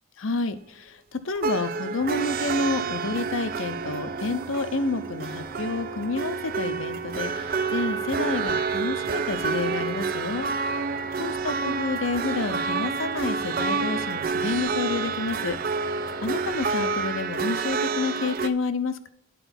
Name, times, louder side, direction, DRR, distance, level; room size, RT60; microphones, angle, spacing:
voice 1, 0.2-10.8 11.2-15.6 16.2-19.1, left 3 dB, 70° left, 11 dB, 0.7 m, -29 dB
sound 1, 1.4-18.5, right 5 dB, 45° right, 0.4 m, -29 dB
sound 2, 2.0-17.1, equal, 10° left, 0.5 m, -47 dB
9.3 x 4.5 x 5.7 m, 0.75 s
head